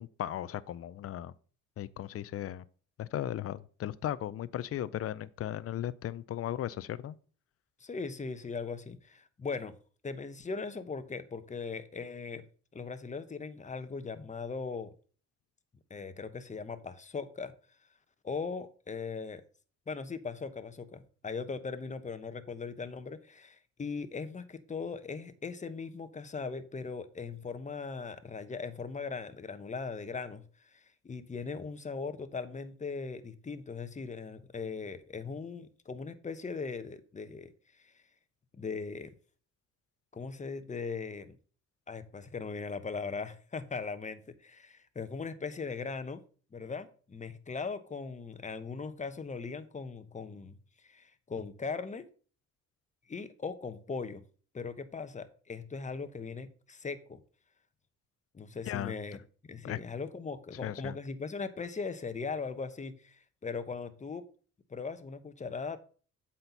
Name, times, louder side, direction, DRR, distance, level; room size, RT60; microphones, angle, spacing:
voice 1, 0.0-1.3 1.8-2.6 3.0-7.2 58.6-58.9 59.6-59.8 60.6-60.9, left 12 dB, 50° left, 0.5 m, -36 dB
voice 2, 7.8-9.7 10.0-12.5 12.7-14.9 15.9-17.5 18.2-19.4 19.9-37.5 37.8-37.9 38.5-39.1 40.1-41.4 41.9-46.2 46.5-50.5 50.8-52.1 53.1-54.2 54.5-57.2 58.3-59.2 59.5-64.2 64.7-65.8, left 4 dB, 25° left, 0.9 m, -39 dB
7.9 x 4.4 x 5.4 m
cardioid pair, 90°, 30 cm